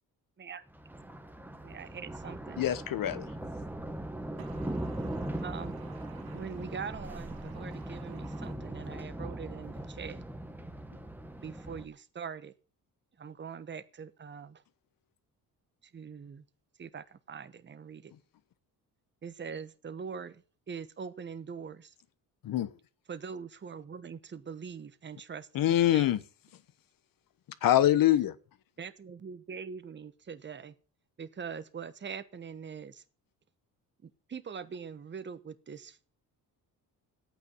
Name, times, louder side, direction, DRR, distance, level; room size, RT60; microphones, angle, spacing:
Thunder, 0.7-11.9, right 1 dB, 5° right, 1.2 m, -40 dB
voice 1, 1.6-2.6 5.4-5.8 6.3-10.2 11.4-12.5 13.2-14.6 15.8-16.4 16.8-18.1 19.2-21.9 23.1-25.5 25.8-26.1 28.8-30.7 31.2-33.0 34.0-36.1, right 6 dB, 30° right, 1.1 m, -43 dB
voice 2, 2.6-3.2 22.4-22.7 25.5-26.2 27.6-28.3, left 12 dB, 65° left, 1.1 m, -24 dB
voice 3, 4.4-6.8 7.4-8.5, right 9 dB, 80° right, 2.4 m, -55 dB
12.0 x 9.0 x 7.2 m
cardioid pair, 135°, 36 cm